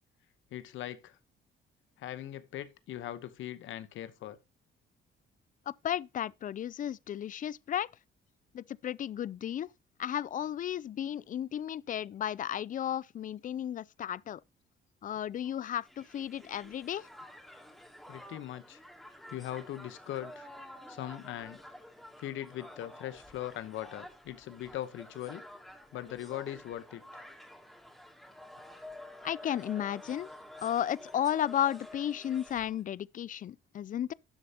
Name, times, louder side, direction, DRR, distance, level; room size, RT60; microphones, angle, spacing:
voice 1, 0.5-1.1 2.0-4.4 18.1-18.8 19.3-20.5 20.9-21.6 22.2-25.4 25.9-27.2, left 12 dB, 80° left, 0.9 m, -40 dB
voice 2, 5.7-7.9 8.5-9.7 10.0-14.4 15.0-17.1 29.2-30.3 30.6-34.1, left 10 dB, 40° left, 0.4 m, -34 dB
Crowd, 15.4-32.8, left 1 dB, ahead, 2.5 m, -50 dB
12.0 x 6.6 x 2.8 m
cardioid pair, 90°, 20 cm